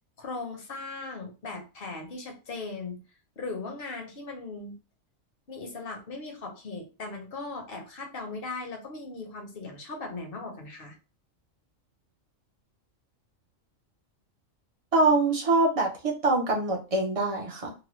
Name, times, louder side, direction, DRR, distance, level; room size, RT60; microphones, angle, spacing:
voice 1, 0.2-3.0 3.4-4.7 5.5-11.0, left 3 dB, 50° left, 2 dB, 1.0 m, -38 dB
voice 2, 14.9-17.7, right 2 dB, 35° right, 0 dB, 0.7 m, -24 dB
2.9 x 2.2 x 3.0 m, 0.31 s
omnidirectional pair, 1.4 m